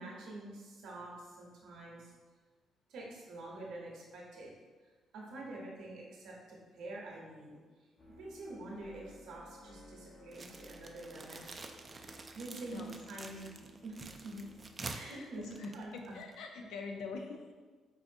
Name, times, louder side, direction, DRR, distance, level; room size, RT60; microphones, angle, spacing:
voice 1, 0.0-2.1 2.9-4.5 5.1-7.6 8.1-13.5 13.8-13.9 14.2-14.3 14.9-16.1, right 2 dB, 80° right, -3 dB, 0.9 m, -47 dB
sound 1, 8.0-14.9, left 1 dB, 40° left, 0.8 m, -57 dB
sound 2, 10.3-16.4, right 3 dB, 30° right, 0.3 m, -48 dB
voice 2, 15.1-17.5, left 4 dB, 85° left, 3 dB, 0.4 m, -44 dB
4.7 x 2.5 x 2.5 m, 1.4 s
cardioid pair, 90°, 0 cm